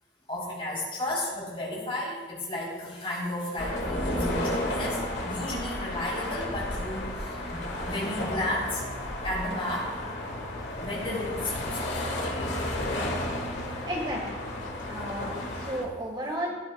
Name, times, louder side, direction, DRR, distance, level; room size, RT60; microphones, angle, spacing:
voice 1, 0.3-8.8 9.2-10.0 10.8-12.0, left 1 dB, 25° left, -4 dB, 3.4 m, -33 dB
sound 1, 3.6-15.8, left 1 dB, 60° left, 1.7 m, -33 dB
sound 2, 10.3-15.6, left 2 dB, 75° left, 0.6 m, -44 dB
voice 2, 13.9-14.4 14.9-16.5, equal, 25° right, 0 dB, 1.5 m, -33 dB
17.0 x 11.5 x 2.2 m, 1.4 s
head